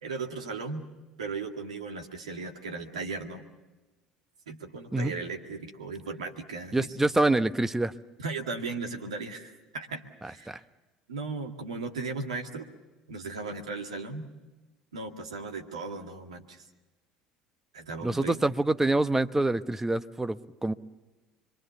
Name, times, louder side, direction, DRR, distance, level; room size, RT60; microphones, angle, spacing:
voice 1, 0.0-0.8 1.2-3.5 4.5-6.9 8.2-10.6 11.1-12.7 13.1-14.3 14.9-16.6 17.7-18.4, right 4 dB, 80° right, 4 dB, 2.1 m, -37 dB
voice 2, 6.7-7.9 10.5-10.6 18.0-20.7, right 2 dB, 10° right, 11 dB, 1.0 m, -26 dB
26.5 x 23.5 x 7.0 m, 1.1 s
hypercardioid pair, 65°, 3 cm